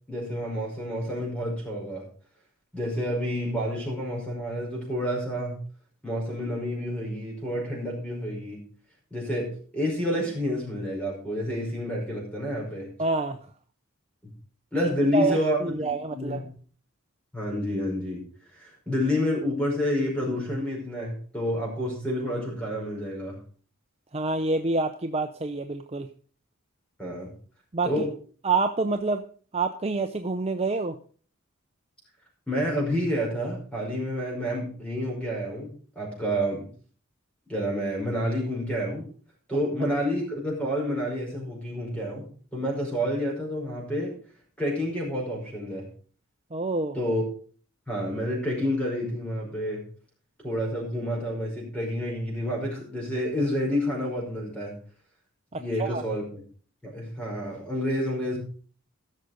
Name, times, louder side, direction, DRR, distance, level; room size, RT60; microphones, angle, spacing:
voice 1, 0.1-2.0 2.7-5.6 6.0-8.6 9.1-12.9 14.7-16.4 17.3-18.2 18.5-23.4 27.0-27.3 27.8-28.1 32.5-36.7 37.5-39.0 39.5-44.1 44.6-45.9 46.9-47.2 47.9-49.8 50.4-54.7 55.5-56.2 56.8-58.4, equal, 5° left, -2 dB, 5.1 m, -29 dB
voice 2, 13.0-13.5 15.1-16.4 24.1-26.1 27.7-28.0 28.4-29.2 29.5-31.0 46.5-47.0 55.5-56.0, right 3 dB, 30° right, 7 dB, 0.6 m, -27 dB
15.5 x 6.5 x 5.1 m, 0.43 s
head